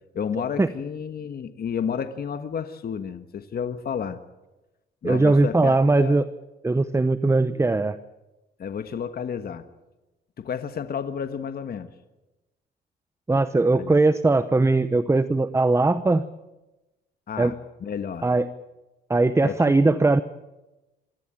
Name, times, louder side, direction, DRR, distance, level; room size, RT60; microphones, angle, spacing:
voice 1, 0.1-4.2 5.0-6.2 8.6-9.6 10.4-11.9 13.7-13.9 17.3-18.3 19.4-20.0, left 7 dB, 50° left, 9 dB, 1.5 m, -31 dB
voice 2, 5.0-6.3 6.6-8.0 13.3-16.3 17.4-17.5 18.2-18.5 19.1-20.2, right 2 dB, 15° right, 13 dB, 0.9 m, -20 dB
24.5 x 15.5 x 9.0 m, 1.0 s
cardioid pair, 90°, 20 cm